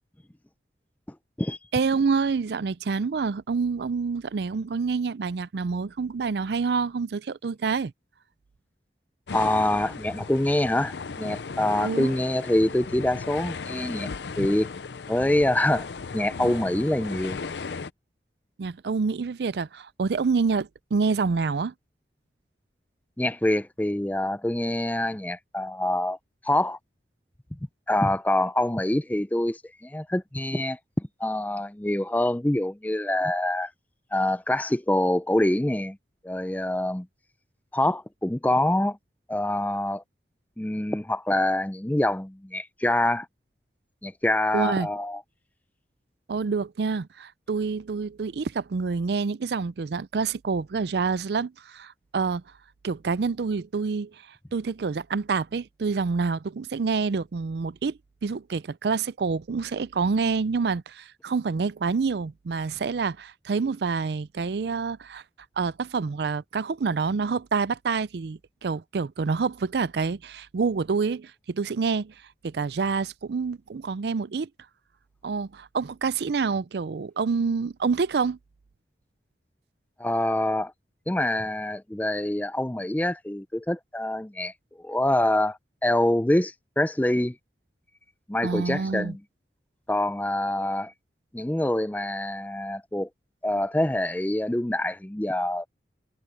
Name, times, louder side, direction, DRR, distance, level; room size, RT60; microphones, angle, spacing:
voice 1, 1.7-7.9 11.8-12.1 18.6-21.7 44.5-44.9 46.3-52.4 52.8-54.1 54.5-65.2 65.6-72.1 72.4-74.5 75.2-78.4 88.4-89.2, right 5 dB, 65° right, 0.4 m, -27 dB
sound 1, 9.3-17.9, left 4 dB, 75° left, 0.6 m, -36 dB
voice 2, 9.3-14.1 14.4-14.7 15.1-15.9 16.1-17.4 23.2-26.2 26.4-26.8 27.9-33.7 34.1-36.0 36.2-37.1 37.7-39.0 39.3-40.0 40.6-43.3 44.0-45.2 80.0-80.7 81.1-84.5 84.8-87.4 88.3-89.2 89.9-90.9 91.3-93.1 93.4-95.7, left 1 dB, 10° left, 0.5 m, -25 dB
head